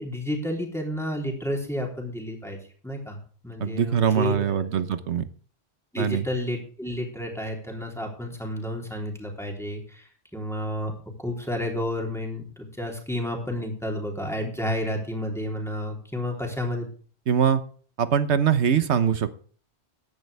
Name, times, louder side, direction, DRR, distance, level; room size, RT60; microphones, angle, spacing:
voice 1, 0.0-2.6 2.8-3.2 3.4-4.7 5.9-10.9 11.2-16.9, left 1 dB, ahead, -1 dB, 3.5 m, -31 dB
voice 2, 3.6-5.2 6.0-6.2 17.3-17.6 18.0-19.4, right 8 dB, 85° right, 12 dB, 1.3 m, -22 dB
14.5 x 10.5 x 3.4 m, 0.43 s
omnidirectional pair, 1.1 m